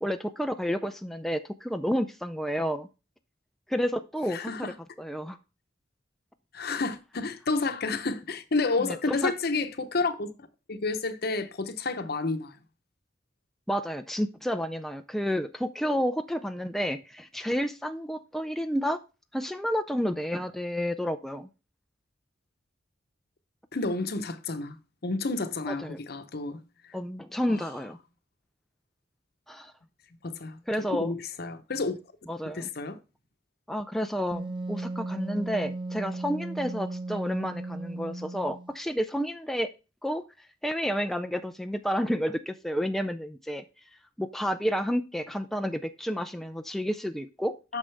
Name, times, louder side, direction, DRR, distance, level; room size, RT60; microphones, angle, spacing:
voice 1, 0.0-2.9 3.7-5.4 8.8-9.3 13.7-19.0 19.3-21.5 25.7-26.0 26.9-28.0 29.5-29.7 30.7-31.1 32.3-32.7 33.7-39.7 40.0-40.2 40.6-43.6 44.2-47.8, equal, ahead, 0.3 m, -30 dB
voice 2, 4.3-4.7 6.5-10.3 10.7-12.6 23.7-24.8 25.0-26.6 30.2-32.0 32.4-33.0 47.7-47.8, left 3 dB, 55° left, 0.8 m, -30 dB
Wind instrument woodwind instrument, 34.3-38.7, right 2 dB, 25° right, 0.7 m, -36 dB
8.7 x 6.3 x 3.4 m
head